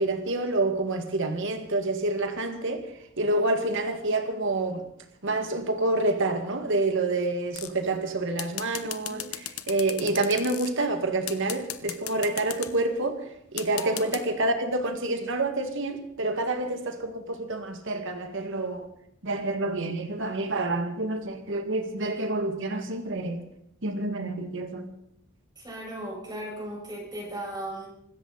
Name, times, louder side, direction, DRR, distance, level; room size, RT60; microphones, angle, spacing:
voice 1, 0.0-2.9 3.2-4.8 5.2-13.2 13.5-18.9 19.2-23.4 23.8-24.9, right 2 dB, 60° right, 2.0 m, -28 dB
sound 1, 7.5-7.9 8.4-10.7 11.3-12.7 13.6-14.2, left 12 dB, 90° left, 1.3 m, -35 dB
voice 2, 13.7-14.1 25.6-27.9, right 1 dB, 20° right, 5.6 m, -37 dB
25.0 x 13.5 x 4.1 m
head